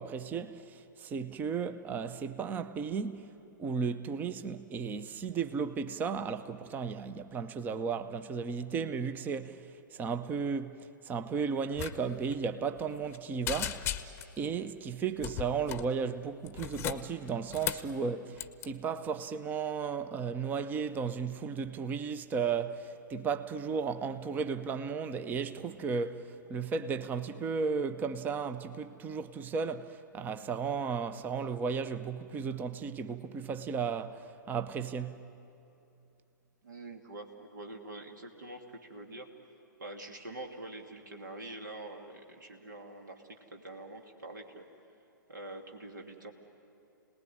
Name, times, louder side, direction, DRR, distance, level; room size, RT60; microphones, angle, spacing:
voice 1, 0.0-13.9 14.4-35.2, right 5 dB, 15° right, 0.8 m, -34 dB
sound 1, 11.8-11.9 12.2-12.4 12.8-13.2 13.5-14.4 15.2-15.9 16.5-17.9 18.4-18.7, left 11 dB, 20° left, 0.9 m, -36 dB
voice 2, 36.6-39.3 39.8-43.2 43.5-44.7 45.3-46.3, right 2 dB, 65° right, 2.8 m, -45 dB
29.0 x 19.5 x 9.9 m
figure-of-eight pair, 115°, 11 cm